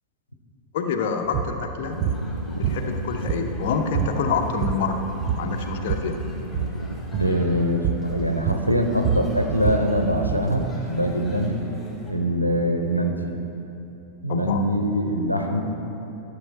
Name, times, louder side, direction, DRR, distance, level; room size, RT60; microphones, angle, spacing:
voice 1, 0.7-2.0 2.5-5.1 5.4-6.2 14.3-14.6, left 5 dB, 55° left, 4 dB, 0.6 m, -27 dB
sound 1, 1.3-1.5 2.0-2.2 2.6-3.6 3.9-4.2 4.5-4.9 5.2-6.1 6.5-6.8 7.1-7.4 7.8-8.1 8.5-10.5, right 8 dB, 40° right, 0.6 m, -26 dB
sound 2, 1.8-12.1, left 1 dB, 15° left, 2.4 m, -44 dB
sound 3, 1.9-7.4, left 1 dB, 90° right, 0.4 m, -34 dB
voice 2, 7.2-11.5 12.1-13.2 14.2-15.6, equal, 90° left, 4 dB, 0.7 m, -23 dB
13.0 x 6.6 x 4.3 m, 2.9 s
figure-of-eight pair, 90°, 0 cm